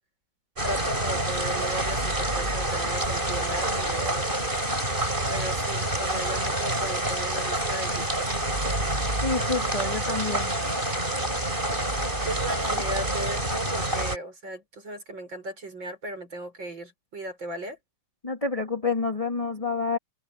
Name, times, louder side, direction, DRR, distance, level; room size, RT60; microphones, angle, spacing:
sound 1, 0.6-14.2, right 1 dB, 15° right, 7.3 m, -27 dB
voice 1, 0.6-4.3 5.3-8.3 12.2-17.8, right 1 dB, 30° right, 7.2 m, -36 dB
voice 2, 9.2-10.5 18.2-20.0, left 4 dB, 10° left, 2.1 m, -28 dB
omnidirectional pair, 4.2 m